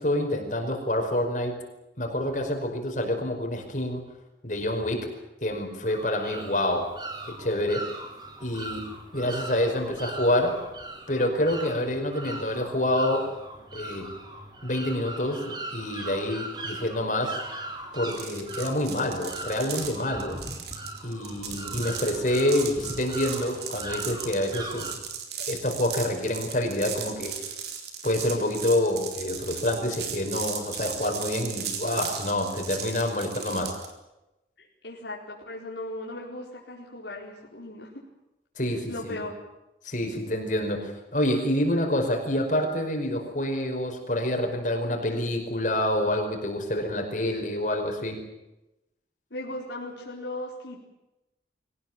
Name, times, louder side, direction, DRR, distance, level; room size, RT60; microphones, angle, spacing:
voice 1, 0.0-1.6 2.0-4.0 4.4-5.1 5.4-6.9 7.3-7.9 8.4-8.8 9.1-10.6 11.1-13.3 13.7-14.2 14.6-17.4 17.9-20.4 21.0-24.9 25.4-27.3 28.0-33.8 38.6-39.2 39.8-48.2, left 1 dB, 45° left, 3 dB, 5.1 m, -27 dB
sound 1, 5.9-24.9, right 2 dB, 25° right, 4.0 m, -40 dB
sound 2, 18.1-33.9, right 8 dB, 65° right, 4.0 m, -37 dB
voice 2, 34.6-38.0 38.9-39.3 49.3-50.8, left 1 dB, 80° left, -3 dB, 4.6 m, -37 dB
24.0 x 18.5 x 9.0 m, 0.96 s
head